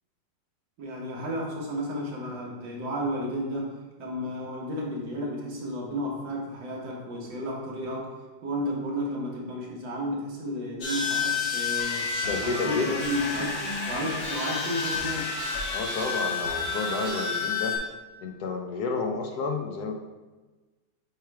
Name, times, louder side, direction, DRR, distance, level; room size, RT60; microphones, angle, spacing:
voice 1, 0.8-3.7 4.0-8.1 8.4-12.1 12.4-15.3, equal, 85° right, -2 dB, 2.0 m, -32 dB
sound 1, 10.8-17.8, left 4 dB, 85° left, 2.4 m, -30 dB
voice 2, 12.3-12.9 15.7-17.8 18.2-19.9, left 4 dB, 65° left, 3 dB, 1.1 m, -30 dB
8.0 x 3.1 x 4.7 m, 1.2 s
omnidirectional pair, 2.0 m